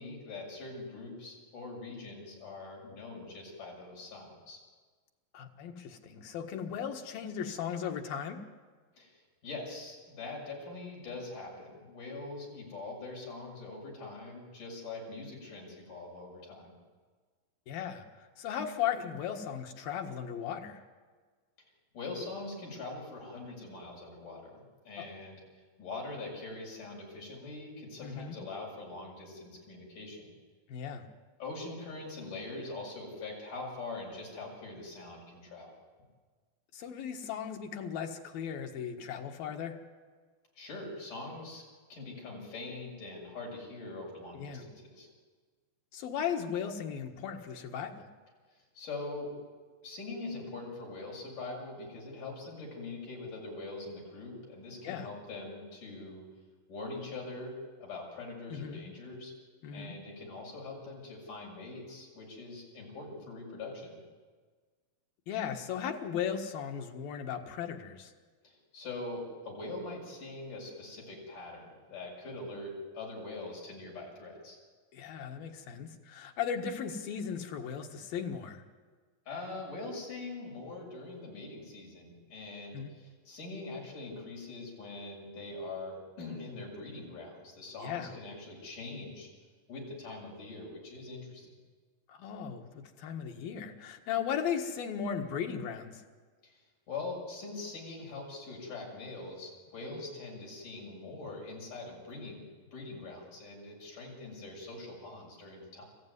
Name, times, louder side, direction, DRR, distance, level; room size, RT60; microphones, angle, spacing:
voice 1, 0.0-4.6 9.0-16.7 21.9-25.4 25.8-30.3 31.4-35.7 40.6-41.6 41.9-45.1 48.5-49.3 49.8-56.2 56.7-57.5 57.8-59.3 59.7-64.0 68.4-74.6 79.3-89.3 89.7-91.6 96.4-96.5 96.9-102.4 102.7-105.8, left 3 dB, 65° left, -2 dB, 8.9 m, -43 dB
voice 2, 5.3-8.4 17.7-20.8 25.0-25.2 28.0-28.4 30.7-31.0 36.7-39.8 44.4-44.7 45.9-48.1 54.8-55.1 58.5-58.8 59.6-60.0 65.3-68.1 74.9-78.6 82.7-82.9 87.8-88.1 92.1-96.0, left 8 dB, 90° left, 3 dB, 3.5 m, -37 dB
29.0 x 15.5 x 9.7 m, 1.5 s
omnidirectional pair, 4.0 m